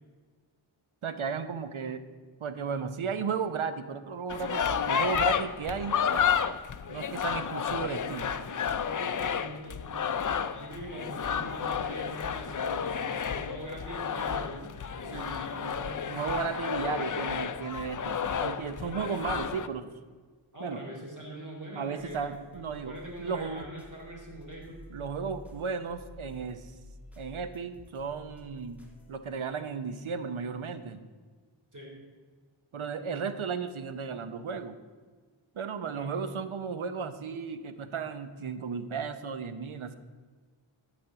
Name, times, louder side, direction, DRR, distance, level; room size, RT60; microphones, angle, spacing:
voice 1, 1.0-2.0 2.4-6.0 6.9-8.3 15.1-15.3 16.1-19.9 20.6-20.8 21.8-23.7 24.9-26.7 27.2-31.1 32.7-34.7 35.5-40.0, right 5 dB, 80° right, 11 dB, 0.9 m, -34 dB
sound 1, 4.3-19.7, left 7 dB, 40° left, 0.5 m, -31 dB
voice 2, 8.8-10.2 10.5-16.2 18.8-19.0 20.5-24.8 31.7-31.9 35.9-36.1, right 1 dB, 40° right, -2 dB, 3.6 m, -43 dB
sound 2, 22.0-29.2, left 1 dB, 5° right, 1.9 m, -51 dB
11.5 x 5.4 x 8.1 m, 1.5 s
wide cardioid pair, 80°, 48 cm